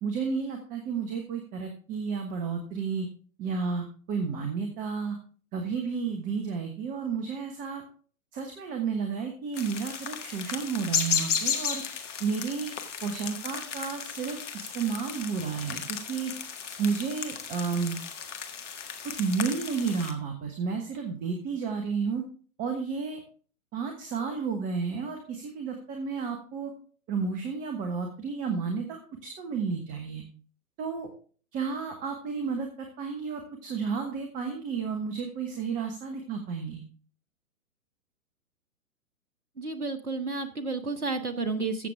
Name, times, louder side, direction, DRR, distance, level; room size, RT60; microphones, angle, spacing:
voice 1, 0.0-3.1 3.4-5.2 5.5-7.8 8.3-11.8 12.2-12.7 13.0-16.3 16.8-18.0 19.0-22.2 22.6-23.2 23.7-26.7 27.1-30.2 30.8-31.1 31.5-32.7 33.0-36.8, right 5 dB, 20° right, 5 dB, 1.2 m, -32 dB
sound 1, 9.5-20.1, left 7 dB, 55° left, 1.7 m, -34 dB
voice 2, 39.6-41.9, right 3 dB, 85° right, 9 dB, 1.1 m, -31 dB
14.5 x 7.0 x 3.5 m, 0.42 s
figure-of-eight pair, 120°, 43 cm